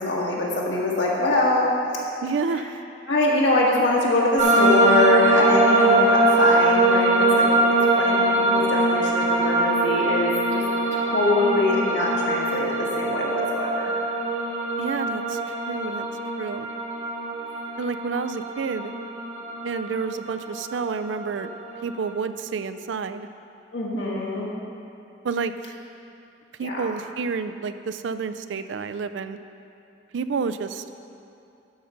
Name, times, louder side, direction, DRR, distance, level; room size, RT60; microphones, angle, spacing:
voice 1, 0.0-1.7 3.1-10.6 10.9-13.9 23.7-24.5 26.6-26.9, left 2 dB, 75° left, -4 dB, 1.7 m, -24 dB
voice 2, 2.2-2.8 14.8-16.1 16.4-16.7 17.8-18.9 19.6-21.5 21.8-23.3 25.2-25.7 26.6-29.4 30.1-30.8, right 5 dB, 80° right, 11 dB, 0.4 m, -29 dB
sound 1, 4.4-22.1, right 2 dB, 35° right, 1.1 m, -22 dB
12.0 x 5.8 x 5.1 m, 2.8 s
head